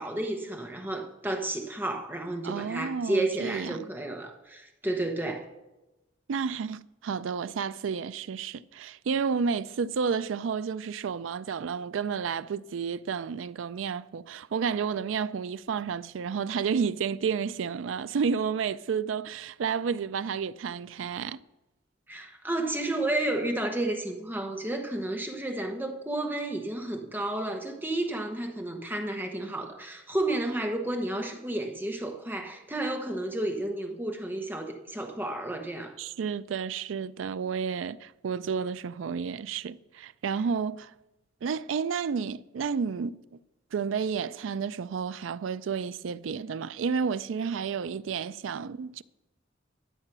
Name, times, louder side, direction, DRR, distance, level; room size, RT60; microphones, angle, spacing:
voice 1, 0.0-5.5 22.1-35.9, right 1 dB, 10° right, 1.1 m, -31 dB
voice 2, 2.4-3.9 6.3-21.4 36.0-40.9 41.4-43.4 43.7-49.0, right 6 dB, 90° right, 0.4 m, -31 dB
12.0 x 7.5 x 6.0 m
head